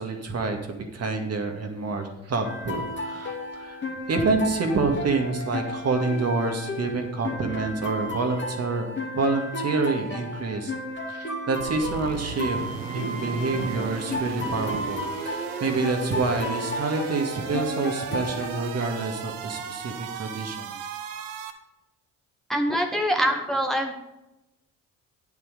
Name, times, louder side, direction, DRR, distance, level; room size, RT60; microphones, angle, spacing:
voice 1, 0.0-3.8 4.1-8.9 9.2-10.7 11.1-20.8, right 3 dB, 40° right, 4 dB, 2.0 m, -27 dB
sound 1, 2.4-18.6, left 1 dB, 30° left, 2.3 m, -33 dB
sound 2, 11.6-21.5, right 7 dB, 80° right, 1.0 m, -36 dB
voice 2, 22.5-23.9, equal, ahead, 4 dB, 1.2 m, -24 dB
9.5 x 9.0 x 5.0 m, 0.94 s
hypercardioid pair, 50°, 37 cm